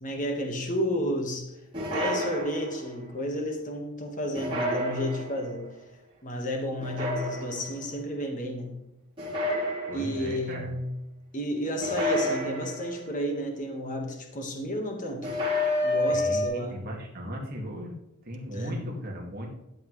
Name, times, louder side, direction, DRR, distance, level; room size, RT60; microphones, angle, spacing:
voice 1, 0.0-1.6 1.9-5.7 6.2-8.8 9.9-10.9 11.3-15.3 15.8-16.8 18.5-18.9, equal, 35° left, 2 dB, 1.5 m, -32 dB
sound 1, 1.7-3.0 4.3-5.5 6.8-7.8 9.2-10.3 11.8-13.1 15.2-16.5, left 1 dB, 25° right, 3.3 m, -29 dB
voice 2, 9.9-10.7 16.1-17.9 18.3-19.5, equal, 45° right, -1 dB, 2.1 m, -37 dB
12.5 x 7.8 x 3.2 m, 0.89 s
head